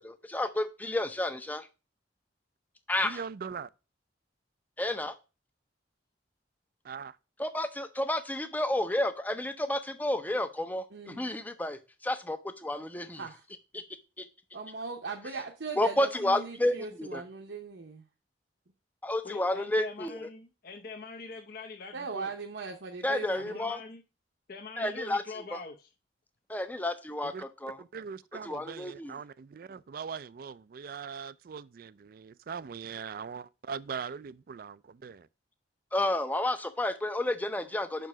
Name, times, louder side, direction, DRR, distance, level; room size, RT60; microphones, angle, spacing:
voice 1, 0.0-1.7 2.9-3.2 4.8-5.1 7.4-13.2 13.7-13.8 14.2-14.3 15.8-17.2 19.0-20.2 23.0-23.8 24.8-25.6 26.5-27.8 28.4-29.2 35.9-38.1, left 1 dB, 10° left, 0.5 m, -31 dB
voice 2, 3.0-3.7 6.8-7.2 27.2-27.4 27.8-35.3, right 6 dB, 50° right, 0.3 m, -41 dB
voice 3, 10.9-11.3 13.1-13.4 14.5-18.0 21.9-23.7, right 4 dB, 70° right, 0.8 m, -39 dB
voice 4, 19.2-22.3 23.4-24.0 24.5-25.9, left 4 dB, 50° left, 0.7 m, -43 dB
6.0 x 4.6 x 6.0 m
head